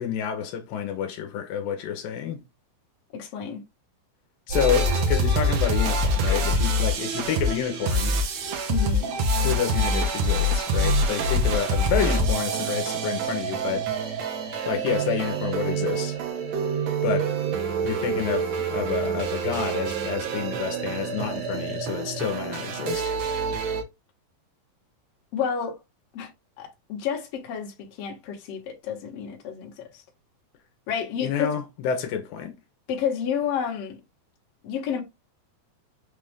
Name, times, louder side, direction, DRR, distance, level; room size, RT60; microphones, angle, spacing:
voice 1, 0.0-2.4 4.5-8.2 9.4-13.9 14.7-16.2 17.0-17.3 17.8-23.1 31.2-32.6, left 8 dB, 80° left, 2.5 m, -29 dB
voice 2, 3.1-3.6 8.7-9.1 25.3-25.8 26.1-26.3 26.6-30.0 30.9-31.5 32.9-34.0 34.6-35.0, left 7 dB, 55° left, 1.9 m, -30 dB
sound 1, 4.5-23.8, right 1 dB, 70° right, 1.8 m, -26 dB
6.1 x 2.5 x 3.5 m
omnidirectional pair, 4.1 m